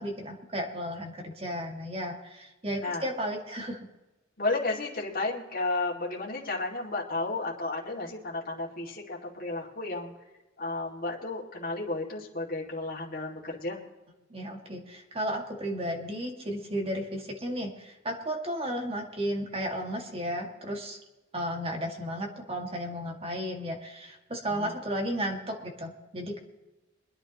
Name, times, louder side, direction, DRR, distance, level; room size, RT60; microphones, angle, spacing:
voice 1, 0.0-3.8 14.3-21.0 21.3-26.4, equal, 30° right, 2 dB, 2.1 m, -34 dB
voice 2, 4.4-10.1 10.6-13.8 24.5-24.7, left 2 dB, 50° left, -3 dB, 2.3 m, -33 dB
24.5 x 10.5 x 3.0 m, 1.1 s
head